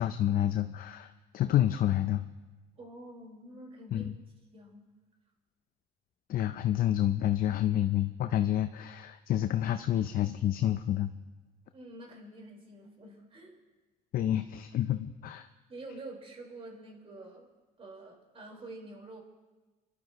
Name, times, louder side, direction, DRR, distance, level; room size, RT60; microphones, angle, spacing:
voice 1, 0.0-2.2 3.9-4.2 6.3-11.1 14.1-15.5, left 12 dB, 60° left, 9 dB, 0.6 m, -29 dB
voice 2, 2.8-4.1 4.5-4.8 11.7-13.6 15.7-17.5 17.8-19.2, right 2 dB, 35° right, -1 dB, 4.6 m, -47 dB
29.5 x 12.0 x 3.1 m, 1.2 s
cardioid pair, 110°, 17 cm